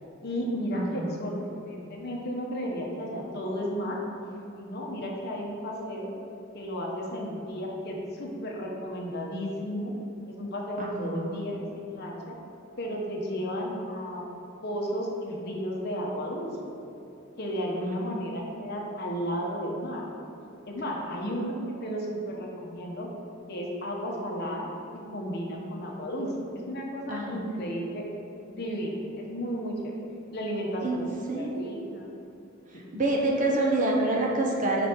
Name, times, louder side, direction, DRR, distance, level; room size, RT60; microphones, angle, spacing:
voice 1, 0.0-1.4 1.6-4.0 4.6-6.1 6.5-9.9 10.3-12.3 12.8-14.2 14.6-16.7 17.4-20.0 20.7-23.1 23.5-28.0 28.5-29.9 30.3-32.1 32.7-32.8, equal, 50° left, -1 dB, 0.9 m, -33 dB
voice 2, 0.7-1.2 10.8-11.4 17.8-18.1 27.1-27.5 30.8-31.7 32.7-34.9, right 2 dB, 35° right, -2 dB, 0.8 m, -28 dB
5.1 x 4.0 x 6.0 m, 2.9 s
head